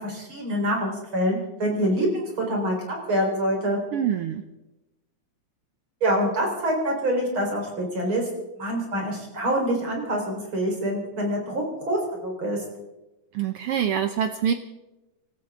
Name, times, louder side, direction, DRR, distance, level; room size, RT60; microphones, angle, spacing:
voice 1, 0.0-3.8 6.0-8.3 8.6-12.6, equal, 40° right, 0 dB, 4.9 m, -26 dB
voice 2, 3.9-4.4 13.3-14.5, right 9 dB, 85° right, 8 dB, 1.2 m, -25 dB
27.0 x 14.0 x 3.7 m, 1.0 s
omnidirectional pair, 3.5 m